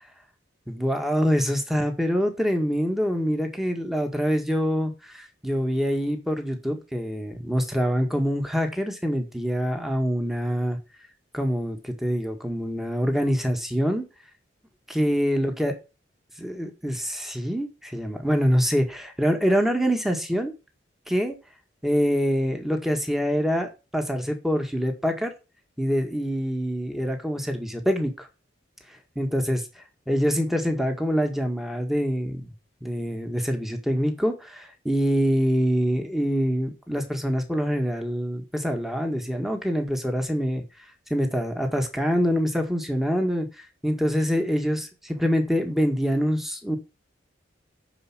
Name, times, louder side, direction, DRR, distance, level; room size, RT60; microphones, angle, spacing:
voice 1, 0.7-10.8 11.3-14.0 14.9-15.7 16.4-20.5 21.1-21.4 21.8-25.3 25.8-28.3 29.2-29.6 30.1-32.5 32.8-40.6 41.1-43.5 43.8-46.8, equal, ahead, 4 dB, 1.9 m, -25 dB
11.0 x 4.9 x 7.4 m, 0.30 s
head